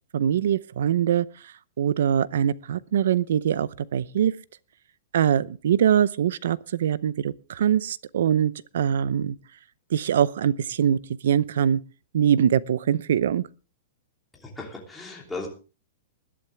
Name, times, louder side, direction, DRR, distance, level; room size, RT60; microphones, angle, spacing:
voice 1, 0.1-1.3 1.8-4.3 5.1-9.4 9.9-11.8 12.1-13.4, right 9 dB, 70° right, 0.7 m, -23 dB
voice 2, 14.3-15.5, left 3 dB, 5° left, 3.0 m, -36 dB
20.5 x 11.0 x 3.4 m
supercardioid pair, 170°, 0 cm